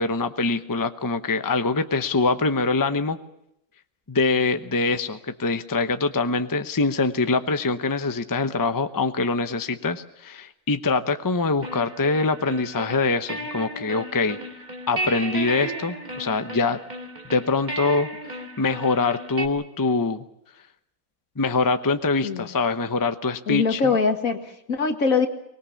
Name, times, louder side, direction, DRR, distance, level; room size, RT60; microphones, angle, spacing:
voice 1, 0.0-3.2 4.1-14.4 14.9-16.8 17.3-18.1 18.6-20.2 21.4-23.9, left 3 dB, 15° left, 9 dB, 0.8 m, -24 dB
sound 1, 11.6-19.5, right 1 dB, 30° right, 2.6 m, -34 dB
voice 2, 23.5-25.3, left 5 dB, 70° left, 6 dB, 2.3 m, -22 dB
24.0 x 20.5 x 7.2 m, 0.78 s
omnidirectional pair, 1.5 m